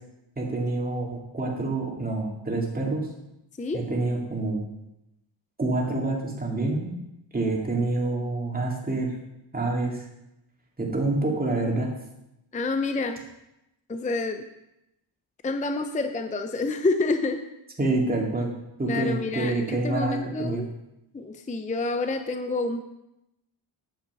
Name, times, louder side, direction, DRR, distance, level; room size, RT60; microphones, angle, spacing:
voice 1, 0.4-3.1 3.7-4.6 5.6-6.9 7.3-9.1 9.5-10.0 10.8-11.9 17.8-18.5 18.8-20.6, right 2 dB, 20° right, -2 dB, 2.3 m, -27 dB
voice 2, 12.5-13.2 13.9-14.4 15.4-17.4 18.9-20.7 21.1-22.8, left 3 dB, 15° left, 7 dB, 0.5 m, -28 dB
9.5 x 7.3 x 6.8 m, 0.90 s
wide cardioid pair, 155°, 48 cm